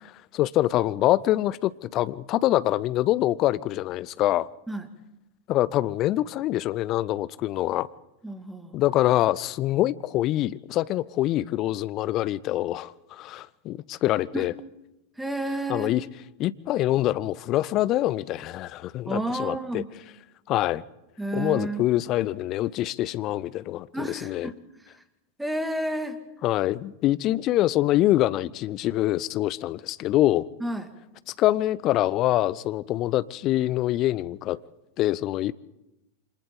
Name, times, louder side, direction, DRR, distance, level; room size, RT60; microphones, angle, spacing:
voice 1, 0.3-4.5 5.5-7.9 8.7-14.5 15.7-16.1 16.4-19.8 20.5-20.8 21.3-24.5 26.4-30.5 31.4-34.6 35.0-35.5, left 15 dB, 35° left, 0.7 m, -25 dB
voice 2, 8.2-8.8 14.3-14.4 15.2-16.0 19.1-19.9 21.2-21.8 23.9-24.6 25.4-26.2 30.6-30.9, right 1 dB, 5° right, 2.1 m, -30 dB
28.5 x 26.0 x 3.9 m
figure-of-eight pair, 90°, 0 cm